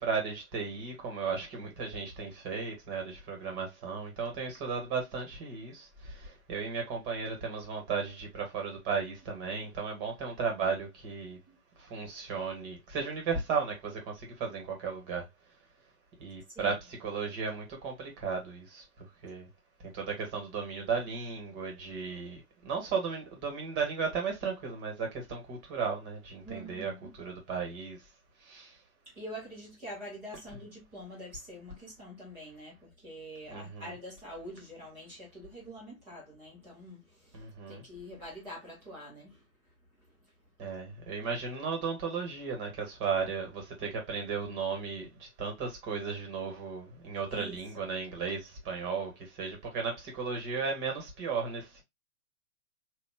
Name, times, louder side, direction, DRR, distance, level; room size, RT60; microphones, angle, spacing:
voice 1, 0.0-11.4 11.8-15.3 16.2-19.5 19.8-26.9 27.2-28.0 28.4-28.7 33.5-33.9 37.3-37.8 40.6-51.8, right 5 dB, 25° right, 1.7 m, -35 dB
voice 2, 26.4-27.1 29.1-37.4 37.7-39.4 47.3-47.9, equal, 5° right, 0.4 m, -45 dB
4.2 x 2.8 x 2.2 m
hypercardioid pair, 135°, 45 cm